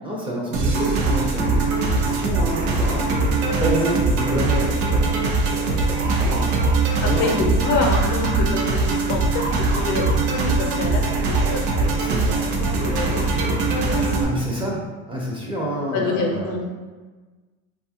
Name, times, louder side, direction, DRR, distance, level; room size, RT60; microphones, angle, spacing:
voice 1, 0.0-7.3 11.9-12.4 14.2-16.5, equal, 15° right, -3 dB, 0.4 m, -29 dB
sound 1, 0.5-14.2, right 3 dB, 85° right, 0.6 m, -21 dB
voice 2, 7.0-9.4 9.7-12.2 12.6-14.1 15.9-16.7, left 3 dB, 50° left, 1 dB, 0.7 m, -27 dB
2.7 x 2.4 x 2.7 m, 1.3 s
supercardioid pair, 105°, 36 cm